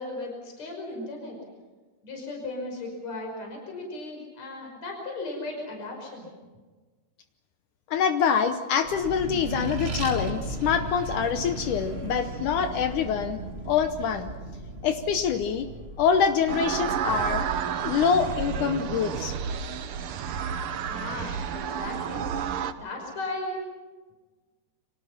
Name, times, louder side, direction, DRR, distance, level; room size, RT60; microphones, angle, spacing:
voice 1, 0.0-1.4 2.0-6.3 20.9-22.3 22.7-23.6, left 2 dB, 50° left, 1 dB, 6.6 m, -36 dB
voice 2, 7.9-13.4 13.7-14.3 14.8-15.7 16.0-17.5 17.8-19.4, left 7 dB, 70° left, 8 dB, 2.3 m, -25 dB
Accelerating revving vroom, 8.8-19.8, right 1 dB, 25° right, 1.5 m, -37 dB
sound 1, 16.5-22.7, right 8 dB, 75° right, 1.3 m, -31 dB
30.0 x 25.5 x 5.8 m, 1.3 s
omnidirectional pair, 3.9 m